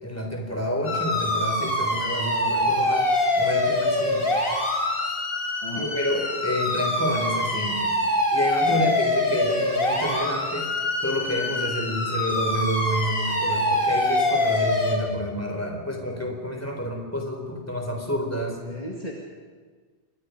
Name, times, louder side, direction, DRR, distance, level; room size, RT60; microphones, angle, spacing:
voice 1, 0.0-3.1 3.4-4.3 5.7-7.9 8.3-10.7 11.0-18.6, equal, 15° left, 2 dB, 4.0 m, -29 dB
sound 1, 0.8-14.9, left 1 dB, 60° left, 4.0 m, -24 dB
voice 2, 5.6-6.0 8.7-9.0 18.6-19.1, left 1 dB, 35° left, -1 dB, 2.3 m, -35 dB
27.5 x 22.0 x 5.3 m, 1.5 s
omnidirectional pair, 1.1 m